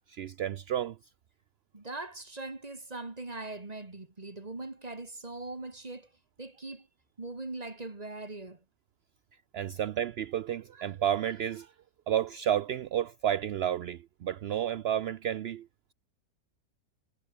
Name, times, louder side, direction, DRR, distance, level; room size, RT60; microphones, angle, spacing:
voice 1, 0.1-1.0 9.5-11.7 12.1-15.7, right 10 dB, 70° right, 0.6 m, -31 dB
voice 2, 1.7-6.1 6.4-6.9 7.2-8.6, right 2 dB, 25° right, 2.2 m, -41 dB
omnidirectional pair, 1.7 m